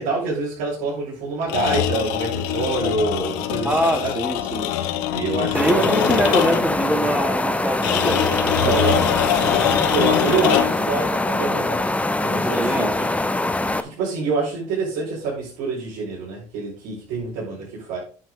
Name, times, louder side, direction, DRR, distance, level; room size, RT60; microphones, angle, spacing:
voice 1, 0.0-4.2 5.1-5.8 8.6-9.0 9.3-13.1 13.8-18.0, right 4 dB, 85° right, -7 dB, 5.2 m, -26 dB
sound 1, 1.4-6.8 7.8-10.9, left 11 dB, 90° left, 1.1 m, -23 dB
voice 2, 3.6-4.7 5.5-8.3 8.6-8.7 12.5-13.1, right 1 dB, 10° right, 3 dB, 2.8 m, -23 dB
sound 2, 5.5-13.8, left 2 dB, 10° left, 0.9 m, -23 dB
9.3 x 8.0 x 3.8 m, 0.39 s
supercardioid pair, 95°, 14 cm